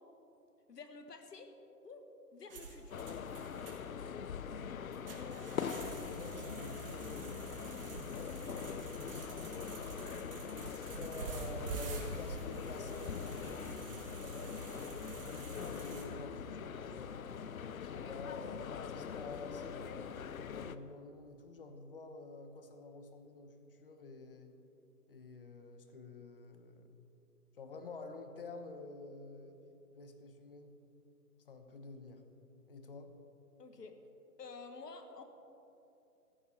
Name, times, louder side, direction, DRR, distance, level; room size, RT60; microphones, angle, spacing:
voice 1, 0.7-1.5 1.8-2.1 2.3-3.0 8.3-8.6 14.6-14.8 33.6-34.0 34.4-35.2, left 4 dB, 85° left, 6 dB, 1.8 m, -51 dB
sound 1, 2.5-16.0, right 3 dB, 35° right, 1.8 m, -47 dB
sound 2, 2.9-20.8, left 7 dB, 60° left, 0.7 m, -43 dB
voice 2, 5.1-7.3 8.5-8.8 11.0-13.7 15.6-17.3 17.8-24.6 25.1-27.0 27.5-29.6 29.9-30.8 31.5-32.3 32.7-33.1, left 3 dB, 35° left, 7 dB, 1.0 m, -49 dB
15.5 x 14.0 x 4.2 m, 2.9 s
hypercardioid pair, 170°, 47 cm